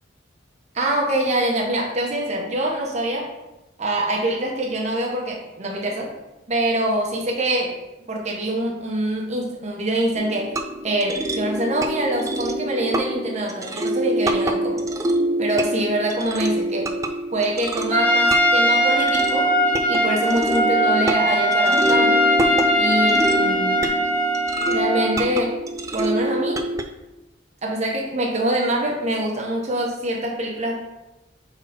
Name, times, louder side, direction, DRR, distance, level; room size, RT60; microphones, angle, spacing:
voice 1, 0.7-3.3 3.8-6.1 6.5-7.7 8.1-10.5 10.8-14.8 15.4-16.9 17.3-19.5 19.9-22.3 22.8-23.9 24.6-25.5 25.9-26.6 27.6-30.7, right 1 dB, 35° right, -1 dB, 1.0 m, -24 dB
sound 1, 10.2-26.8, right 1 dB, 15° right, 0.3 m, -26 dB
Trumpet, 17.9-25.2, equal, 10° left, 0.7 m, -20 dB
5.7 x 4.0 x 4.2 m, 1.0 s
head